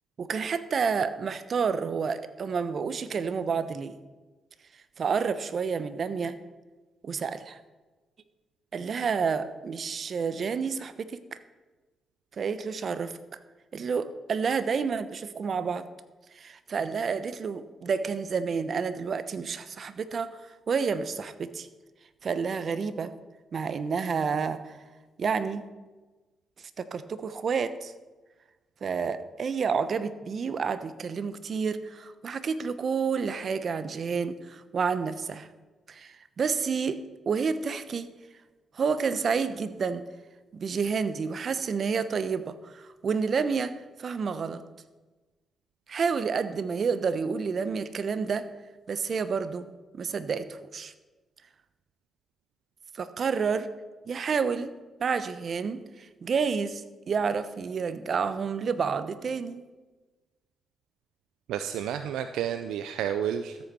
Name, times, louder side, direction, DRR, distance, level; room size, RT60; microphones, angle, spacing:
voice 1, 0.2-3.9 5.0-6.4 7.0-7.6 8.7-11.4 12.4-13.1 13.7-15.8 16.3-20.4 20.7-21.7 22.2-23.1 23.5-24.8 25.2-25.6 26.8-27.9 28.8-35.5 35.9-38.1 38.7-40.0 40.5-44.6 45.9-48.5 48.9-49.6 49.9-50.9 52.9-53.7 54.1-54.7 55.0-59.7, right 5 dB, 55° right, 13 dB, 0.9 m, -29 dB
voice 2, 61.5-63.6, right 9 dB, 80° right, 10 dB, 0.5 m, -30 dB
13.5 x 8.6 x 6.1 m, 1.2 s
hypercardioid pair, 45°, 0 cm